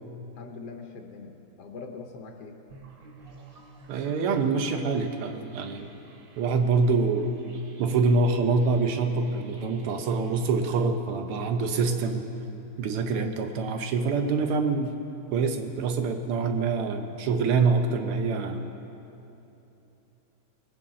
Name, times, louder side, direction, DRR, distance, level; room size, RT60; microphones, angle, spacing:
voice 1, 0.4-2.6, left 4 dB, 60° left, 3 dB, 1.2 m, -42 dB
sound 1, 2.7-10.6, right 3 dB, 55° right, 0.6 m, -53 dB
voice 2, 3.9-5.9 6.4-7.3 7.8-12.3 12.8-15.0 15.3-18.6, right 4 dB, 90° right, 6 dB, 1.8 m, -25 dB
19.5 x 9.8 x 3.8 m, 3.0 s
omnidirectional pair, 2.3 m